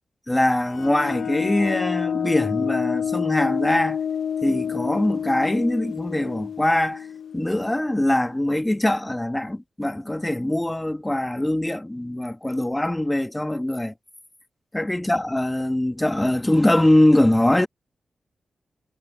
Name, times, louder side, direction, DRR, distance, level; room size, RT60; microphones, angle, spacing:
voice 1, 0.3-4.0 4.4-7.1 7.3-13.9 14.7-17.7, left 1 dB, 15° left, 1.7 m, -22 dB
sound 1, 0.7-8.1, left 8 dB, 70° left, 1.1 m, -28 dB
cardioid pair, 60°, 0 cm